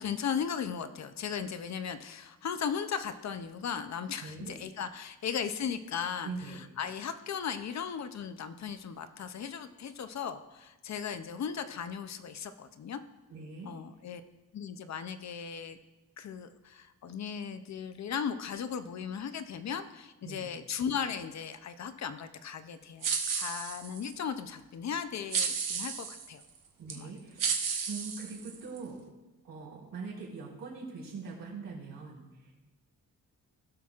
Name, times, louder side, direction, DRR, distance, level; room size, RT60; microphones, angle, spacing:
voice 1, 0.0-13.0 13.6-14.2 14.5-15.8 16.2-23.1 23.3-26.4 26.9-27.1, left 7 dB, 50° left, 10 dB, 0.6 m, -37 dB
voice 2, 4.2-4.6 6.2-6.6 13.3-13.8 20.2-20.5 26.8-27.5 27.9-29.0 29.4-32.5, right 4 dB, 85° right, -5 dB, 3.3 m, -42 dB
sound 1, 23.0-24.1 25.3-26.3 26.9-27.0 27.4-28.8, right 6 dB, 65° right, 0.9 m, -32 dB
16.5 x 5.9 x 2.4 m, 1.1 s
cardioid pair, 115°, 35 cm